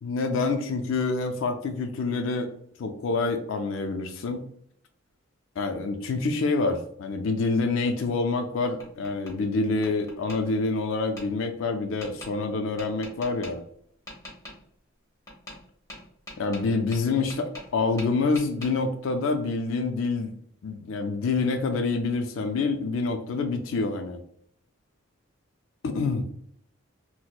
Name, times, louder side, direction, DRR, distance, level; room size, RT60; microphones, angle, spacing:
voice 1, 0.0-2.5 2.8-4.5 5.6-13.6 16.4-20.3 20.6-24.2 25.8-26.3, left 3 dB, 65° left, 6 dB, 0.4 m, -27 dB
Tap, 8.3-9.3 9.8-10.4 11.2-11.3 12.0-12.3 12.8-13.5 14.1-14.6 15.3-15.6 15.9-17.7 18.0-18.7, left 1 dB, 15° left, 1.0 m, -42 dB
4.1 x 2.0 x 2.2 m, 0.66 s
head